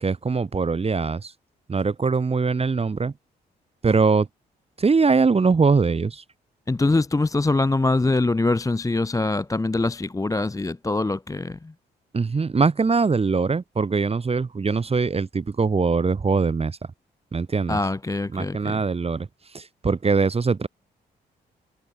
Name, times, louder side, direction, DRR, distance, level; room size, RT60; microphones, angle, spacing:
voice 1, 0.0-1.3 1.7-3.1 3.8-4.3 4.8-6.2 12.1-16.8 17.3-17.8 18.3-19.3 19.5-20.7, right 4 dB, 30° right, 0.9 m, -22 dB
voice 2, 6.7-11.7 17.7-18.8, left 2 dB, 15° left, 0.7 m, -23 dB
hypercardioid pair, 45°, 20 cm